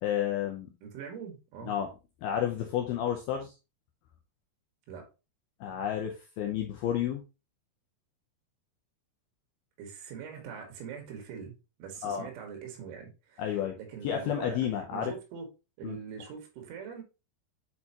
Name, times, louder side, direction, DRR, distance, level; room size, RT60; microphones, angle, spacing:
voice 1, 0.0-0.7 1.6-1.9 2.2-3.5 5.6-7.2 12.0-12.3 13.4-13.8 14.0-15.1 15.8-16.0, left 10 dB, 85° left, 2.2 m, -31 dB
voice 2, 0.8-1.8 4.9-5.1 9.8-14.6 14.9-15.5 15.8-17.0, right 7 dB, 90° right, 4.1 m, -43 dB
8.2 x 4.4 x 2.9 m
omnidirectional pair, 5.3 m